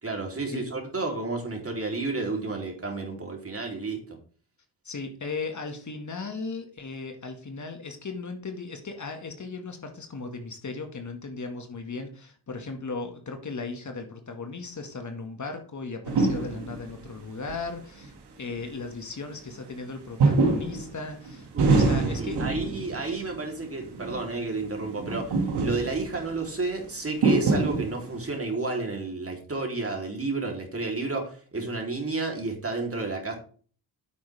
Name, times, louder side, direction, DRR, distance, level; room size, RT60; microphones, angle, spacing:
voice 1, 0.0-4.2 21.5-21.8 22.2-33.3, right 3 dB, 35° right, 1 dB, 3.6 m, -31 dB
voice 2, 4.8-22.4, left 4 dB, 45° left, 5 dB, 2.0 m, -37 dB
sound 1, 16.0-17.0 17.5-17.6 18.0-18.1 20.2-23.2 23.6-24.2 24.6-26.4 27.1-28.3, right 3 dB, 80° right, 2.1 m, -25 dB
9.5 x 7.9 x 3.5 m, 0.43 s
cardioid pair, 60°, 40 cm